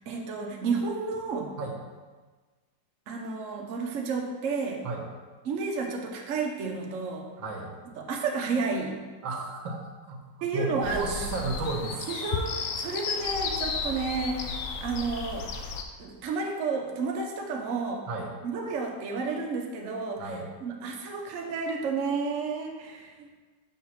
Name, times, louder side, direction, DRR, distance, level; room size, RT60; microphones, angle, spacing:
voice 1, 0.1-1.5 3.1-4.9 5.4-7.3 8.0-9.0 10.4-11.2 12.1-15.5 16.0-18.1 18.4-23.3, right 4 dB, 55° right, 0 dB, 0.9 m, -31 dB
voice 2, 7.4-7.7 9.2-10.2 10.5-12.1 18.1-18.3 20.2-20.5, right 3 dB, 85° right, 1 dB, 1.7 m, -32 dB
sound 1, 10.8-15.8, left 5 dB, 85° left, 0.7 m, -33 dB
6.1 x 3.6 x 5.9 m, 1.4 s
omnidirectional pair, 2.1 m